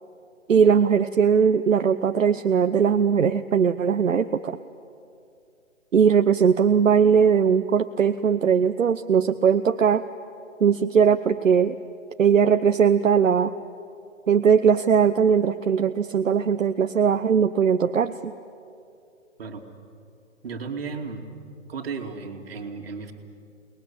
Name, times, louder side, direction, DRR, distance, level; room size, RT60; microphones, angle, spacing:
voice 1, 0.5-4.6 5.9-10.0 10.6-11.8 12.2-13.5 14.3-18.3, right 7 dB, 75° right, 8 dB, 0.9 m, -20 dB
voice 2, 20.4-21.3 21.7-23.1, right 5 dB, 50° right, 3 dB, 2.7 m, -34 dB
29.0 x 20.5 x 8.9 m, 2.5 s
figure-of-eight pair, 145°, 39 cm